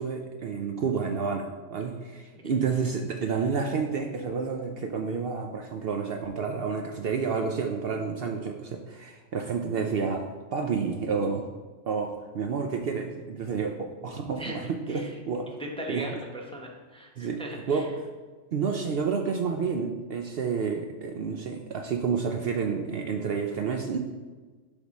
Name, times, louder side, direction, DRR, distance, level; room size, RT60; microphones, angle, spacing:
voice 1, 0.0-10.2 10.5-11.5 11.9-15.5 15.9-16.0 17.2-17.4 17.7-17.9 18.5-24.0, right 5 dB, 60° right, 3 dB, 0.7 m, -30 dB
voice 2, 15.6-17.9, right 1 dB, 5° left, 0 dB, 0.7 m, -38 dB
10.5 x 3.6 x 4.1 m, 1.4 s
omnidirectional pair, 1.3 m